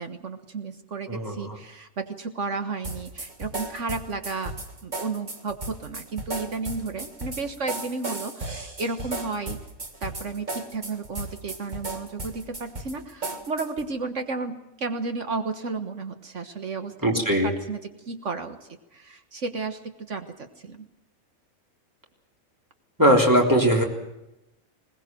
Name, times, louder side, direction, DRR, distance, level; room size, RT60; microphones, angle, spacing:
voice 1, 0.0-4.5 4.8-9.6 10.0-18.6 18.9-20.9, right 4 dB, 60° right, 8 dB, 1.7 m, -33 dB
voice 2, 1.1-1.6 17.0-17.5 23.0-23.8, equal, 15° right, 0 dB, 3.6 m, -20 dB
sound 1, 2.8-13.9, right 2 dB, 35° right, 2.0 m, -35 dB
21.0 x 19.5 x 7.7 m, 0.94 s
omnidirectional pair, 1.4 m